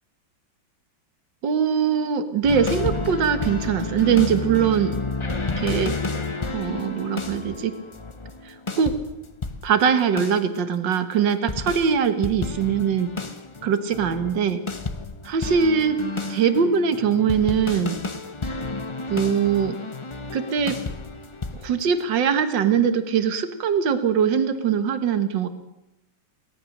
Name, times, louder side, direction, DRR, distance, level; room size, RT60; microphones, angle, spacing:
voice 1, 1.4-5.0 5.6-6.0 6.5-7.8 8.5-9.0 9.6-13.2 13.6-14.6 15.2-16.0 16.3-18.0 19.1-19.8 20.3-20.8 21.6-25.5, right 7 dB, 65° right, 10 dB, 2.1 m, -22 dB
sound 1, 2.4-9.8 10.2-10.4 11.5-22.0, left 3 dB, 35° left, 0.5 m, -31 dB
22.0 x 18.5 x 6.6 m, 0.88 s
omnidirectional pair, 2.1 m